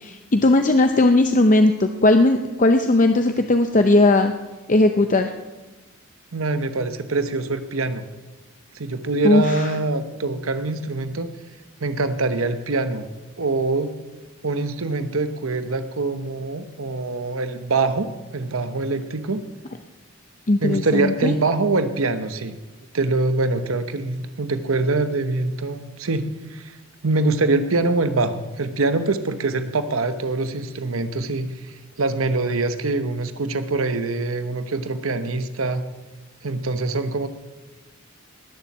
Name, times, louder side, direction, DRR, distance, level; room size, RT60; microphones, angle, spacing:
voice 1, 0.0-4.3 4.7-5.3 9.2-9.7 20.5-21.3, left 2 dB, 40° left, 6 dB, 0.6 m, -17 dB
voice 2, 6.3-8.0 8.7-11.3 11.8-13.1 13.4-13.9 14.4-19.4 20.6-22.6 22.9-26.8 27.0-35.8 36.4-37.3, right 3 dB, 75° right, 9 dB, 1.0 m, -24 dB
20.0 x 7.2 x 7.3 m, 1.2 s
head